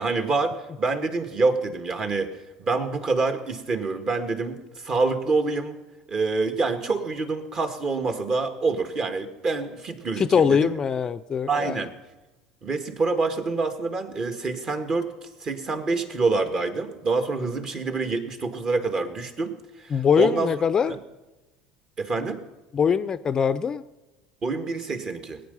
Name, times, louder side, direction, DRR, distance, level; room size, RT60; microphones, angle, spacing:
voice 1, 0.0-5.7 6.1-10.8 11.5-11.9 12.6-20.5 20.9-21.0 22.0-22.4 24.4-25.4, right 3 dB, 35° right, 7 dB, 1.8 m, -26 dB
voice 2, 10.2-11.8 19.9-21.0 22.7-23.8, left 7 dB, 30° left, 14 dB, 0.5 m, -22 dB
20.0 x 9.3 x 5.6 m, 1.1 s
hypercardioid pair, 70°, 2 cm